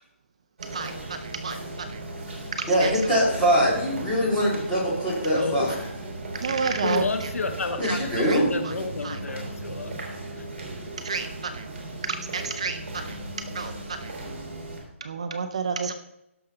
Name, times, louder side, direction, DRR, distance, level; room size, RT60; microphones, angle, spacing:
voice 1, 0.6-2.0 2.5-3.1 5.3-5.5 6.3-7.3 7.8-8.7 9.0-9.2 11.0-11.7 12.0-14.1 15.0-15.9, right 5 dB, 25° right, 8 dB, 0.5 m, -32 dB
sound 1, 0.6-14.8, right 2 dB, 45° right, 4.8 m, -37 dB
voice 2, 2.4-5.7 7.8-8.5, equal, 10° left, -7 dB, 2.4 m, -23 dB
voice 3, 5.3-5.8 6.8-10.0 10.3-10.5, left 4 dB, 85° left, 7 dB, 1.6 m, -30 dB
17.0 x 6.5 x 3.8 m, 0.87 s
hypercardioid pair, 180°, 7 cm